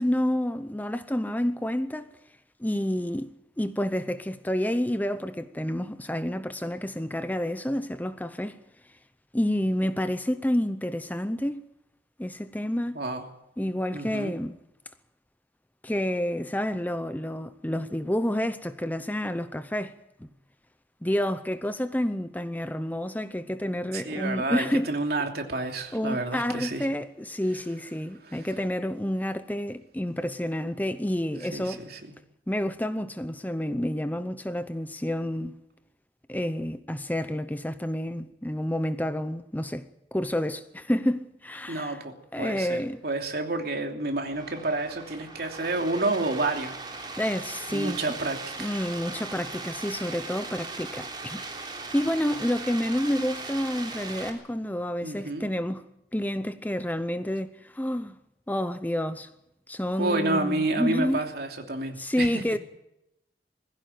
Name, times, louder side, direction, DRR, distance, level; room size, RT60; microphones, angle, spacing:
voice 1, 0.0-2.1 2.6-3.3 3.6-8.6 9.3-11.6 12.2-13.0 13.6-14.5 15.8-20.3 21.0-24.9 25.9-31.8 32.5-35.6 36.3-42.0 42.3-43.0 47.2-48.0 48.6-55.8 56.1-58.2 58.5-59.3 59.7-61.3 62.0-62.6, left 1 dB, 10° left, 0.7 m, -29 dB
voice 2, 13.9-14.3 23.9-26.8 28.2-28.5 31.5-32.0 41.7-46.7 47.7-48.7 55.0-55.5 60.0-62.4, right 2 dB, 60° right, 3.0 m, -30 dB
sound 1, 44.3-54.3, right 3 dB, 25° right, 3.4 m, -39 dB
20.5 x 16.0 x 9.2 m
head